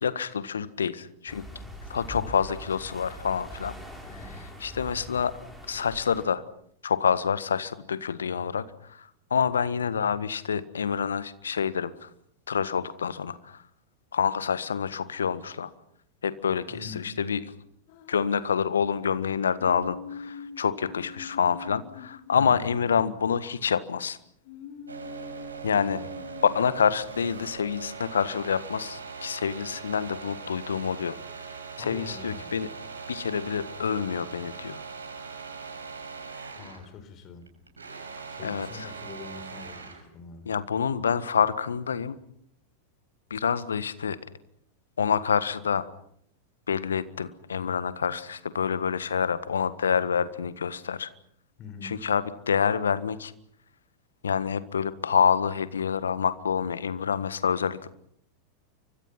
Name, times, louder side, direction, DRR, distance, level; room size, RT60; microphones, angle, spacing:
voice 1, 0.0-1.4 1.9-3.7 4.6-5.4 5.7-6.4 6.8-12.1 12.5-13.6 14.1-15.7 16.2-17.4 18.1-24.2 25.6-26.0 26.5-31.2 31.8-32.7 33.1-34.8 38.4-38.9 40.4-42.2 43.3-44.2 45.0-45.9 46.7-51.1 51.8-53.3 54.2-57.9, left 7 dB, 70° left, 15 dB, 1.6 m, -27 dB
sound 1, 1.3-6.3, equal, ahead, 7.1 m, -42 dB
voice 2, 4.0-4.4 16.7-17.2 22.3-22.8 25.6-26.1 31.8-32.5 36.6-37.5 38.3-40.5 51.6-52.0, left 5 dB, 35° left, 11 dB, 4.8 m, -44 dB
sound 2, 17.9-18.9 19.6-23.5 24.4-26.8, left 6 dB, 50° left, 2.6 m, -44 dB
sound 3, 24.9-36.9 37.2-40.1, right 5 dB, 75° right, 6.4 m, -41 dB
29.5 x 24.5 x 5.9 m, 0.67 s
figure-of-eight pair, 90°, 0 cm